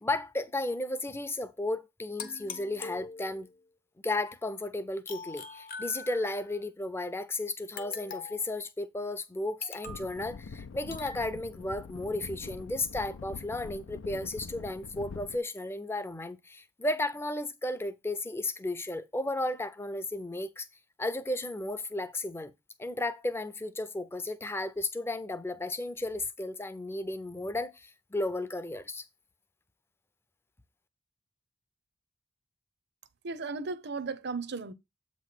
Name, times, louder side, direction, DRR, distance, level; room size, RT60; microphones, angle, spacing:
voice 1, 0.0-3.5 4.0-20.7 21.0-22.5 22.8-29.0, left 2 dB, 15° left, 0.5 m, -34 dB
sound 1, 2.2-3.6 5.1-6.5 7.8-8.5 9.6-10.1 10.9-11.3, left 5 dB, 50° left, 0.9 m, -43 dB
sound 2, 9.8-15.4, left 4 dB, 85° left, 0.5 m, -44 dB
voice 2, 33.2-34.7, right 4 dB, 60° right, 0.7 m, -35 dB
7.9 x 3.1 x 5.9 m
head